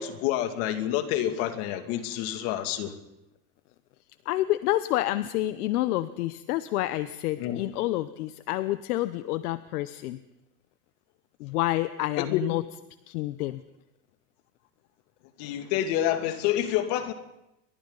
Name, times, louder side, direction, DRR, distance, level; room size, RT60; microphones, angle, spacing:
voice 1, 0.0-2.9 7.4-7.6 12.2-12.4 15.4-17.1, left 12 dB, 55° left, 2.6 m, -28 dB
voice 2, 4.3-10.2 11.4-12.6 13.1-13.6, left 16 dB, 80° left, 1.0 m, -28 dB
29.0 x 23.5 x 4.0 m
supercardioid pair, 145°, 45 cm